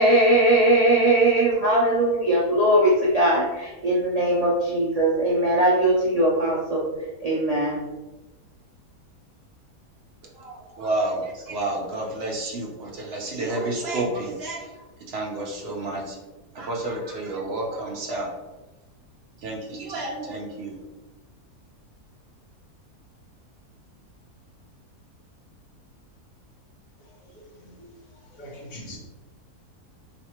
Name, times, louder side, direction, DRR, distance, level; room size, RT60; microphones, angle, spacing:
voice 1, 0.0-6.8 7.2-7.8, right 1 dB, 80° right, -6 dB, 0.3 m, -20 dB
voice 2, 10.3-16.2 16.5-18.3 19.4-20.8, right 2 dB, 60° right, -1 dB, 0.7 m, -30 dB
voice 3, 27.0-27.9 28.1-29.0, left 1 dB, 60° left, -3 dB, 1.5 m, -44 dB
3.2 x 3.1 x 2.9 m, 1.1 s
omnidirectional pair, 1.7 m